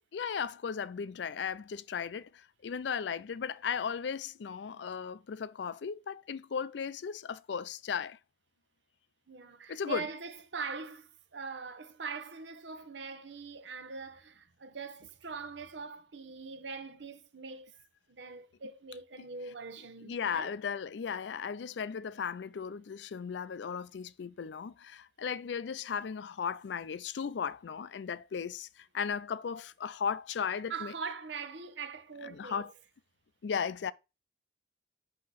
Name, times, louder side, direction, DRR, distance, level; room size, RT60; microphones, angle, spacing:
voice 1, 0.1-8.2 9.7-10.1 20.0-30.9 32.3-32.7 33.4-33.9, left 6 dB, 70° left, 0.4 m, -36 dB
voice 2, 9.3-17.7 18.1-20.5 30.7-32.7, right 5 dB, 75° right, 0.8 m, -42 dB
8.4 x 2.9 x 6.2 m
head